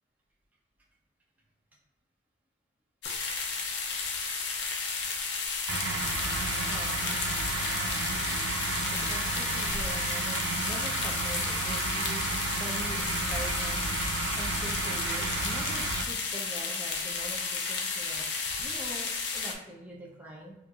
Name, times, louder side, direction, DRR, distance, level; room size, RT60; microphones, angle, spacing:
sound 1, 3.0-19.5, left 4 dB, 65° left, 0.5 m, -32 dB
sound 2, 5.7-16.0, right 5 dB, 80° right, 0.4 m, -33 dB
voice 1, 8.9-13.8 14.3-20.6, equal, 10° right, -4 dB, 0.6 m, -43 dB
4.4 x 2.5 x 2.3 m, 0.92 s
head